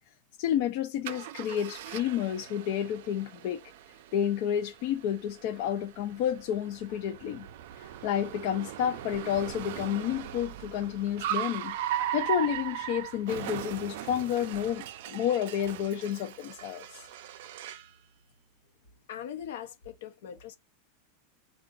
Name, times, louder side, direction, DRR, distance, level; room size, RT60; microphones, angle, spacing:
voice 1, 0.4-3.6 4.1-7.5 7.8-11.7 12.1-17.1, left 10 dB, 50° left, 0.5 m, -30 dB
Car, 1.0-17.9, right 11 dB, 65° right, 0.4 m, -38 dB
voice 2, 19.1-20.6, left 9 dB, 75° left, 0.9 m, -41 dB
3.7 x 2.4 x 3.8 m
supercardioid pair, 155°, 0 cm